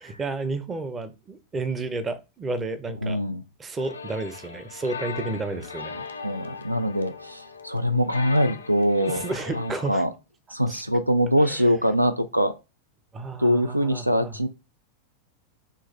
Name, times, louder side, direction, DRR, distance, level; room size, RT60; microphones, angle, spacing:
voice 1, 0.0-3.2 3.6-6.1 9.1-10.0 10.7-10.8 11.4-11.7 13.1-14.3, right 3 dB, 20° right, 0.6 m, -32 dB
voice 2, 3.0-3.4 6.2-9.2 9.6-10.1 10.5-12.5 13.4-14.5, equal, 90° right, 0.3 m, -23 dB
sound 1, 3.8-10.0, left 5 dB, 75° left, 0.5 m, -38 dB
3.8 x 2.4 x 3.8 m
figure-of-eight pair, 90°, 0 cm